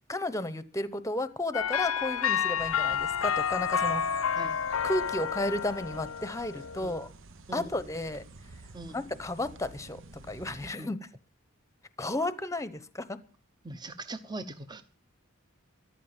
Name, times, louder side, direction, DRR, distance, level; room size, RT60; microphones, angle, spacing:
voice 1, 0.1-4.3 4.8-7.1 7.5-8.2 8.9-10.0 10.3-11.0 12.0-13.2, left 1 dB, 15° left, 14 dB, 0.9 m, -33 dB
sound 1, 1.5-7.1, left 7 dB, 75° left, 0.7 m, -30 dB
sound 2, 2.6-10.7, right 3 dB, 60° right, 0.9 m, -50 dB
voice 2, 13.6-14.8, right 2 dB, 20° right, 9 dB, 0.9 m, -41 dB
14.5 x 11.5 x 7.2 m, 0.39 s
head